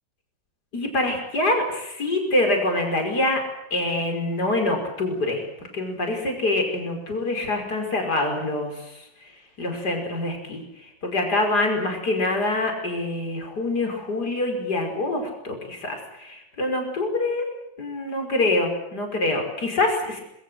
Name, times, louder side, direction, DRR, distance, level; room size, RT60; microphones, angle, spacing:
voice 1, 0.7-3.4 3.7-5.5 5.7-17.5 17.8-20.2, left 2 dB, 65° left, 3 dB, 6.0 m, -25 dB
26.0 x 22.5 x 7.9 m, 0.81 s
omnidirectional pair, 1.9 m